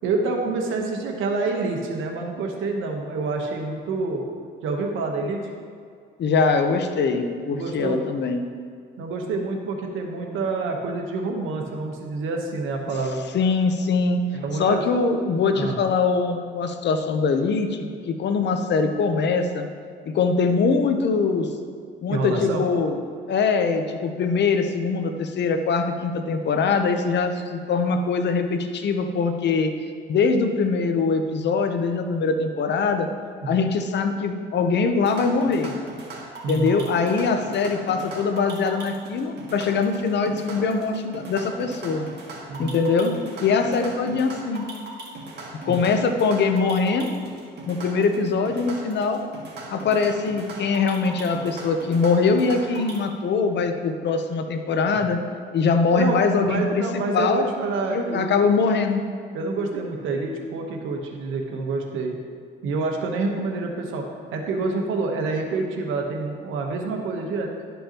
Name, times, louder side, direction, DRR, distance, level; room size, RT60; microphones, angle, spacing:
voice 1, 0.0-4.3 4.6-5.5 7.5-8.0 9.0-13.2 14.3-14.8 15.5-15.8 22.1-22.7 33.4-33.5 36.4-36.8 42.5-42.8 45.7-45.8 56.0-58.4 59.3-62.2 62.6-64.0 64.3-67.5, right 3 dB, 85° right, 2 dB, 1.1 m, -27 dB
voice 2, 6.2-8.4 13.3-14.2 14.6-19.7 20.1-21.5 22.0-23.0 23.3-29.7 30.1-33.1 33.5-35.7 36.5-42.1 42.6-43.1 43.4-44.7 45.7-47.1 47.7-49.2 49.7-55.2 55.5-57.5 57.9-59.0, left 4 dB, 60° left, 6 dB, 0.8 m, -22 dB
sound 1, 35.0-53.0, right 2 dB, 55° right, 1.9 m, -39 dB
12.0 x 5.5 x 2.9 m, 2.2 s
cardioid pair, 90°, 20 cm